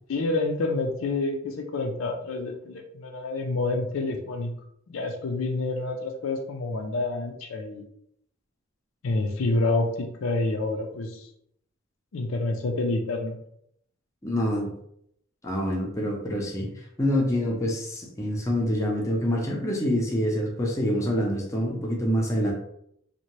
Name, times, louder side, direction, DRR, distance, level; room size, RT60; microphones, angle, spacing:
voice 1, 0.1-4.5 4.9-7.8 9.0-11.3 12.1-13.4, left 2 dB, 80° left, 3 dB, 0.5 m, -28 dB
voice 2, 14.2-14.7 15.4-16.7 17.0-22.5, equal, 15° left, -2 dB, 0.5 m, -26 dB
2.6 x 2.1 x 3.0 m, 0.72 s
head